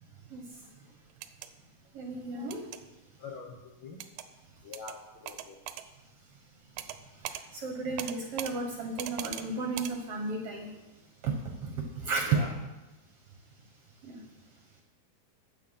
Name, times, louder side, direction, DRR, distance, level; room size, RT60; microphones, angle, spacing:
sound 1, 1.1-1.5 2.5-2.8 4.0-4.3 4.7-5.0 5.3-5.9 6.8-7.0 7.2-7.4 8.0-8.5 9.0-9.5 9.8-9.9, right 12 dB, 85° right, 2.3 m, -39 dB
voice 1, 1.9-2.6 7.5-10.7 11.2-11.3 11.6-11.7 12.0-12.2 14.0-14.2, right 3 dB, 60° right, 2 dB, 1.7 m, -34 dB
voice 2, 3.2-4.0 4.6-5.6 12.3-12.5, left 4 dB, 65° left, 0 dB, 1.2 m, -44 dB
13.0 x 8.4 x 5.7 m, 1.1 s
omnidirectional pair, 3.9 m